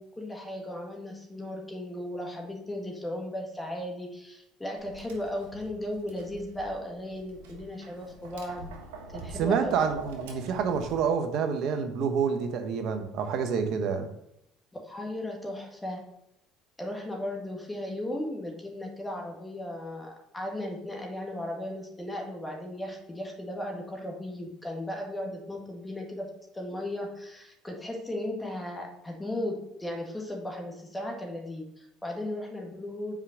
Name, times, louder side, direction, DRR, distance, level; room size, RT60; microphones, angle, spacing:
voice 1, 0.0-8.7 9.1-9.8 14.8-16.0 16.8-33.2, left 1 dB, 10° left, 0 dB, 1.8 m, -36 dB
Tap, 4.8-11.0, right 3 dB, 85° right, 1.2 m, -45 dB
voice 2, 9.3-14.1, right 6 dB, 65° right, 7 dB, 1.1 m, -28 dB
5.7 x 4.9 x 5.9 m, 0.80 s
hypercardioid pair, 75°, 0 cm